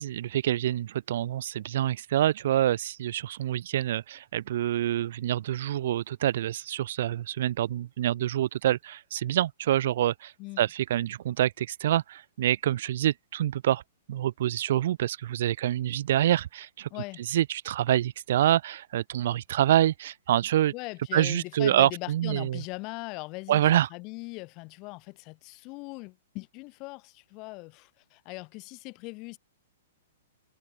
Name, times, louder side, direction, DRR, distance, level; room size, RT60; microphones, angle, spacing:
voice 1, 0.0-13.8 14.1-16.9 17.2-20.7 21.1-22.6 23.5-23.9, right 12 dB, 60° right, 0.9 m, -26 dB
voice 2, 16.9-17.2 20.7-29.4, left 26 dB, 40° left, 1.8 m, -40 dB
hypercardioid pair, 120°, 0 cm